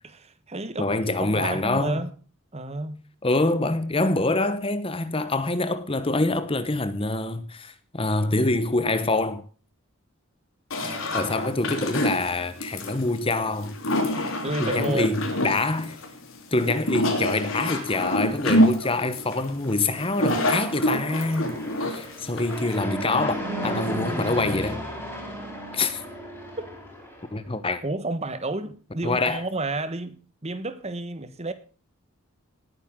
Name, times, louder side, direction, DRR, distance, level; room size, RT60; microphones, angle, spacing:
voice 1, 0.0-0.9 1.2-2.1 2.5-3.0 10.8-11.2 14.1-15.1 27.8-31.5, right 2 dB, 30° right, 1.4 m, -31 dB
voice 2, 0.8-2.1 3.2-9.4 10.8-13.8 14.2-14.3 14.6-16.0 16.5-23.3 23.6-24.8 25.7-26.0 27.3-27.8 29.0-29.4, left 2 dB, 25° left, 1.1 m, -25 dB
sound 1, 10.7-22.8, left 1 dB, 65° left, 3.5 m, -26 dB
Fixed-wing aircraft airplane, 19.9-27.3, equal, 10° left, 5.3 m, -34 dB
19.0 x 9.5 x 3.7 m
head